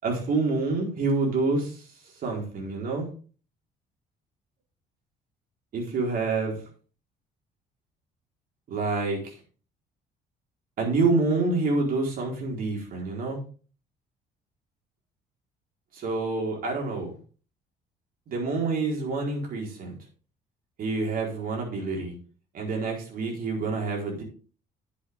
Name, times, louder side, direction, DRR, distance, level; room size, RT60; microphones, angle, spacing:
voice 1, 0.0-1.8 2.2-3.1 5.7-6.6 8.7-9.3 10.8-13.4 15.9-17.1 18.3-20.0 20.8-22.1 22.5-24.2, right 3 dB, 60° right, 0 dB, 4.5 m, -27 dB
10.0 x 8.3 x 3.7 m, 0.38 s
cardioid pair, 110°, 17 cm